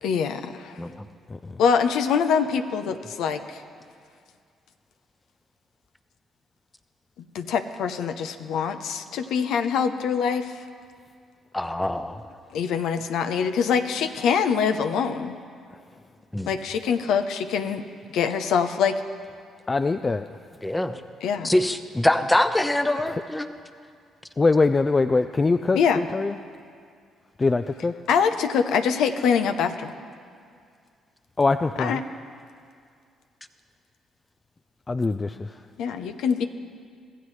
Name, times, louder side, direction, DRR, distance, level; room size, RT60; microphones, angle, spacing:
voice 1, 0.0-0.8 1.6-3.6 7.3-10.5 12.5-15.4 16.5-17.8 18.1-19.0 21.2-21.6 25.7-26.0 28.1-29.9 31.8-32.0 35.8-36.5, left 6 dB, 80° left, 8 dB, 0.8 m, -24 dB
voice 2, 11.5-12.2 16.3-16.5 20.6-20.9 21.4-23.5, left 1 dB, 10° left, 9 dB, 0.8 m, -23 dB
voice 3, 19.7-20.3 23.1-23.2 24.4-26.4 27.4-27.9 31.4-32.0 34.9-35.5, left 3 dB, 25° left, 9 dB, 0.4 m, -23 dB
25.0 x 15.0 x 3.2 m, 2.2 s
cardioid pair, 80°, 0 cm